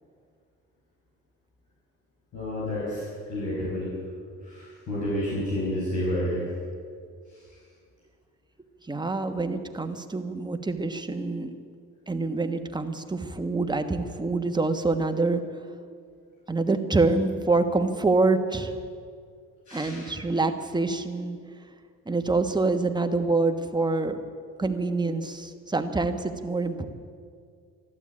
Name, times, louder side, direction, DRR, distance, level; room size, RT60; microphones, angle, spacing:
voice 1, 2.3-3.9 4.4-6.4 19.7-20.1, left 1 dB, 70° left, -7 dB, 5.8 m, -30 dB
voice 2, 8.8-11.5 12.1-15.4 16.5-18.7 19.7-21.4 22.1-24.2 24.6-26.9, right 3 dB, 15° right, 6 dB, 1.3 m, -26 dB
13.5 x 12.0 x 8.6 m, 2.1 s
cardioid pair, 90°, 30 cm